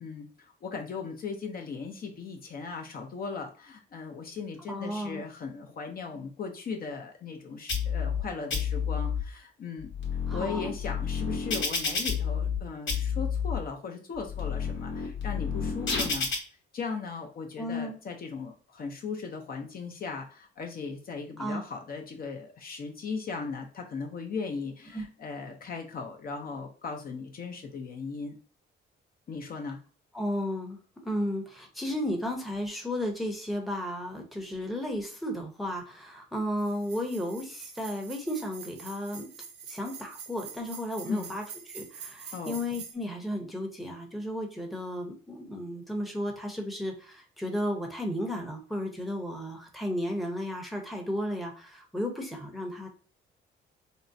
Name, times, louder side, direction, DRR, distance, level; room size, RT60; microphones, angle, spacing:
voice 1, 0.0-9.9 10.3-16.3 16.7-28.4 29.3-29.8 41.1-41.3 42.3-42.6, left 5 dB, 50° left, 2 dB, 0.6 m, -38 dB
voice 2, 4.7-5.2 10.3-10.7 17.6-18.0 21.4-21.6 24.9-25.0 30.1-30.8 31.0-39.3 39.7-52.9, equal, ahead, 2 dB, 0.7 m, -34 dB
sound 1, 7.7-8.2 8.5-9.2 9.8-12.6 12.9-13.6 14.2-16.4, left 6 dB, 70° left, 0.9 m, -30 dB
sound 2, 36.6-42.9, right 6 dB, 60° right, 0.6 m, -46 dB
3.6 x 2.1 x 2.6 m, 0.39 s
cardioid pair, 90°, 20 cm